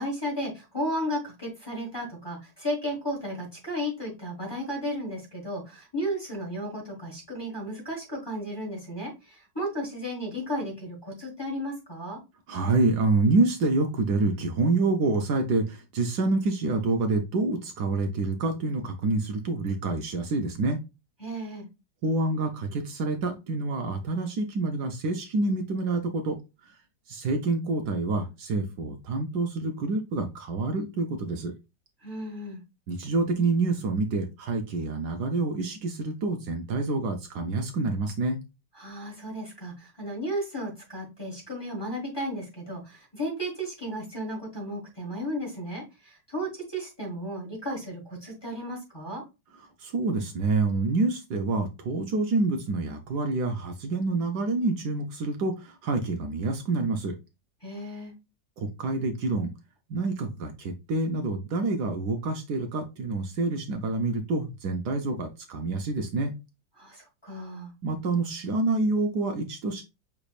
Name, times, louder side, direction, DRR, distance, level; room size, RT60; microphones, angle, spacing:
voice 1, 0.0-12.2 21.2-21.7 32.0-32.6 38.7-49.2 57.6-58.1 66.8-67.7, equal, 15° left, -2 dB, 1.5 m, -34 dB
voice 2, 12.5-20.8 22.0-26.4 27.1-31.5 32.9-38.4 49.8-57.1 58.6-59.5 59.9-66.3 67.8-69.8, right 3 dB, 70° right, 4 dB, 1.2 m, -27 dB
6.0 x 3.3 x 2.4 m, 0.25 s
omnidirectional pair, 1.9 m